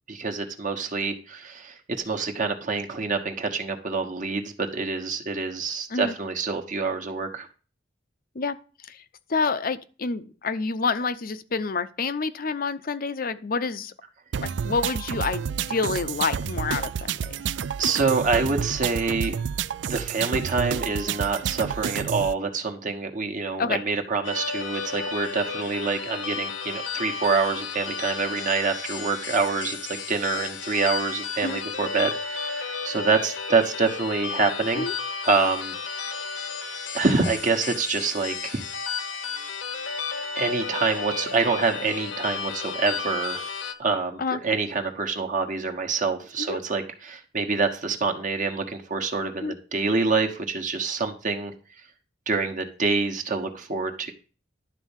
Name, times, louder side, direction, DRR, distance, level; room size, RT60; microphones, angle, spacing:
voice 1, 0.1-1.7 2.0-7.5 17.8-19.3 19.9-34.9 35.2-35.7 36.9-38.6 40.4-43.5 43.8-51.5 52.3-54.1, right 4 dB, 45° right, 4 dB, 1.2 m, -26 dB
voice 2, 9.3-13.9 14.4-17.4 23.6-23.8 31.4-31.6 34.7-34.9 44.2-44.4 46.4-46.6 49.4-49.6, left 4 dB, 50° left, 13 dB, 0.7 m, -28 dB
sound 1, 14.3-22.3, right 7 dB, 70° right, 0.4 m, -30 dB
sound 2, 24.2-43.7, left 5 dB, 75° left, 1.1 m, -33 dB
11.5 x 4.1 x 7.2 m, 0.37 s
head